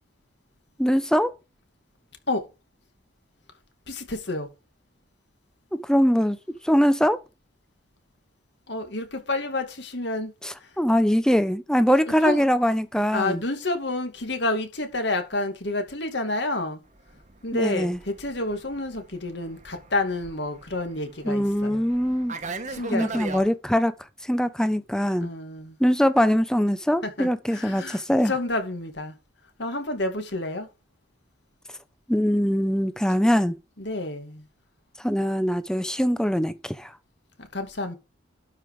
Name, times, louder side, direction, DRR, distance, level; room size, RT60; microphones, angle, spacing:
voice 1, 0.8-1.3 5.7-6.4 6.6-7.2 10.4-13.4 17.5-18.0 21.2-22.3 22.9-23.9 24.2-25.3 25.8-28.3 32.1-33.6 35.0-36.9, equal, 5° left, 0.8 m, -22 dB
voice 2, 3.9-4.5 8.7-10.3 10.6-10.7 12.2-12.5 13.1-16.8 17.4-21.8 22.7-23.2 25.2-25.8 27.0-29.1 29.6-30.7 33.8-34.4 37.4-38.0, left 2 dB, 60° left, 2.4 m, -29 dB
Fixed-wing aircraft airplane, 17.0-23.5, right 3 dB, 40° right, 1.4 m, -39 dB
12.0 x 5.5 x 4.9 m
head